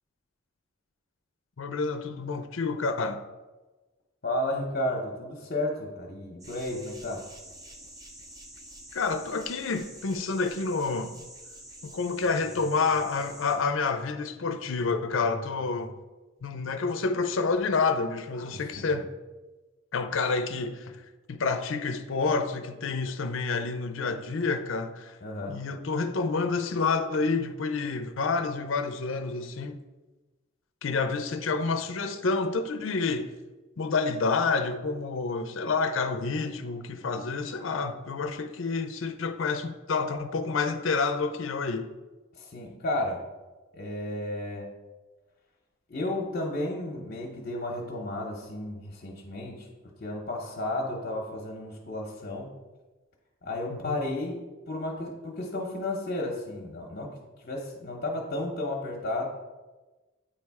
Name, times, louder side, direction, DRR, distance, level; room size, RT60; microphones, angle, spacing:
voice 1, 1.6-3.2 8.9-11.2 11.8-15.9 16.4-19.1 19.9-21.0 21.3-25.2 25.5-29.8 30.8-33.3 33.8-41.9 53.7-54.0, left 4 dB, 70° left, 0.5 m, -29 dB
voice 2, 4.2-7.2 18.5-18.9 25.2-25.6 42.3-43.2 43.7-44.7 45.9-49.7 50.0-52.5 53.4-54.4 54.7-57.2 57.4-59.2, left 1 dB, 50° left, 0.9 m, -33 dB
sound 1, 6.4-13.6, right 1 dB, 20° right, 0.8 m, -47 dB
8.7 x 3.3 x 4.7 m
head